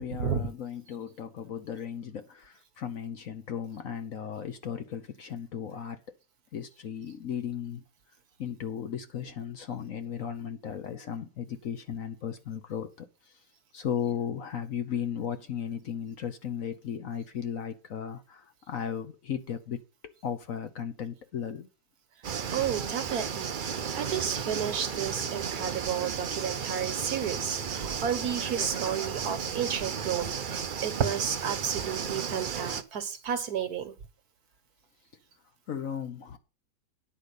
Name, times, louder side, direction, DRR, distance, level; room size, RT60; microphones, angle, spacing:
voice 1, 0.0-6.0 6.5-7.8 8.4-13.1 13.7-19.8 20.2-21.7 35.7-36.4, left 8 dB, 55° left, 1.2 m, -36 dB
sound 1, 22.2-32.8, right 7 dB, 80° right, 0.4 m, -34 dB
voice 2, 22.5-33.9, right 8 dB, 60° right, 1.6 m, -32 dB
10.0 x 5.2 x 8.1 m
omnidirectional pair, 1.9 m